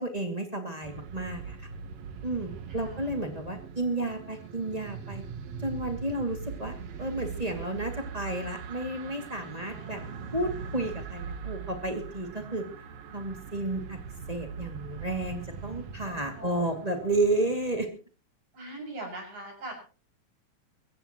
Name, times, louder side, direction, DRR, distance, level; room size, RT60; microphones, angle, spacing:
voice 1, 0.0-1.6 2.2-5.2 5.6-10.0 10.3-12.7 13.1-14.0 14.3-17.9, right 2 dB, 15° right, 4 dB, 2.3 m, -32 dB
sound 1, 0.8-17.8, right 6 dB, 65° right, 2.4 m, -41 dB
voice 2, 2.7-3.1 9.6-10.4 16.0-16.9 18.5-19.8, right 2 dB, 80° right, 1 dB, 8.1 m, -43 dB
23.0 x 15.5 x 3.1 m, 0.37 s
omnidirectional pair, 3.4 m